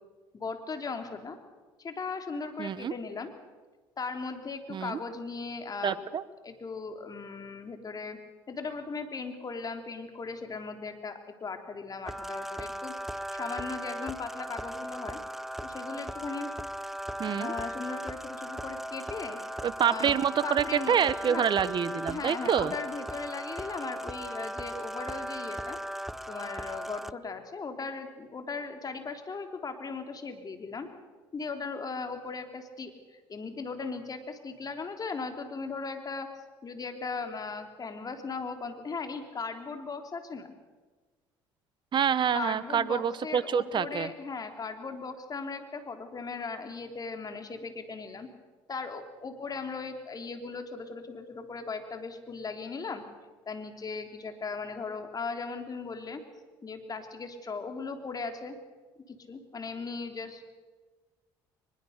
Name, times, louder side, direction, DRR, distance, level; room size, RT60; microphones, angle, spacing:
voice 1, 0.3-1.4 1.8-3.3 4.0-6.0 6.4-8.2 8.5-12.9 13.3-15.2 15.6-16.5 17.2-19.6 19.9-21.4 22.1-25.8 26.3-30.9 31.3-36.3 36.6-40.5 42.3-48.3 48.7-53.0 53.4-56.2 56.6-58.6 59.1-60.4, left 4 dB, 35° left, 6 dB, 3.4 m, -38 dB
voice 2, 2.6-2.9 4.7-5.0 5.8-6.2 17.2-17.5 19.6-22.7 41.9-44.1, right 8 dB, 45° right, 16 dB, 1.2 m, -27 dB
sound 1, 12.1-27.1, equal, ahead, 0.6 m, -38 dB
23.0 x 21.0 x 6.7 m, 1.3 s
supercardioid pair, 70°, 11 cm